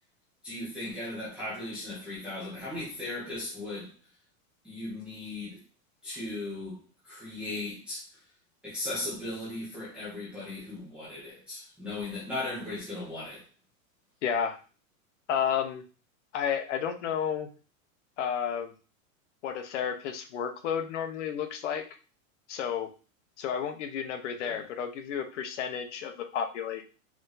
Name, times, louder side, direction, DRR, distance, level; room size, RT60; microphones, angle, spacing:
voice 1, 0.4-3.9 4.6-5.6 6.0-8.1 8.6-13.4 24.4-24.7, left 2 dB, 5° right, 0.4 m, -37 dB
voice 2, 14.2-14.6 15.3-15.8 16.3-17.5 18.2-18.7 19.4-21.8 22.5-22.9 23.4-26.8, left 8 dB, 55° left, 0.8 m, -31 dB
4.9 x 2.6 x 3.8 m
supercardioid pair, 180°, 42 cm